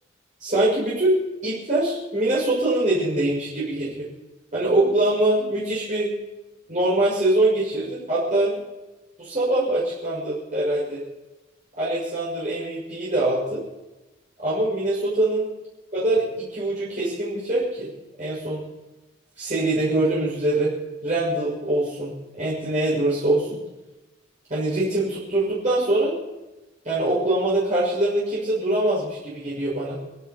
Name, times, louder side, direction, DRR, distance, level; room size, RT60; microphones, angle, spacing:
voice 1, 0.4-1.1 1.4-4.1 4.5-6.1 6.7-8.6 9.2-11.0 11.8-13.6 14.4-15.5 15.9-17.9 18.2-18.6 19.4-20.7 21.0-23.6 24.5-26.2 26.8-30.0, right 1 dB, 40° right, -9 dB, 6.6 m, -23 dB
29.0 x 11.0 x 4.6 m, 1.1 s
head